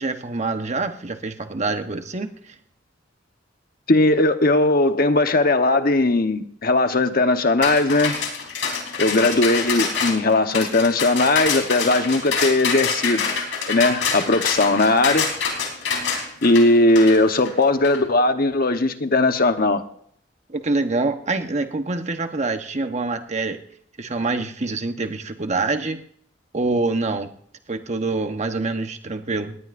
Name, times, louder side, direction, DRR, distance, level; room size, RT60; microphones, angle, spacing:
voice 1, 0.0-2.5 20.5-23.6 24.0-26.0 26.5-27.3 27.7-29.6, right 3 dB, 35° right, 7 dB, 1.1 m, -25 dB
voice 2, 3.9-8.2 9.0-13.3 13.7-15.3 16.4-19.8, left 2 dB, 50° left, 7 dB, 1.1 m, -18 dB
sound 1, 7.6-18.0, left 5 dB, 80° left, 3.8 m, -26 dB
19.5 x 18.5 x 2.6 m, 0.63 s
head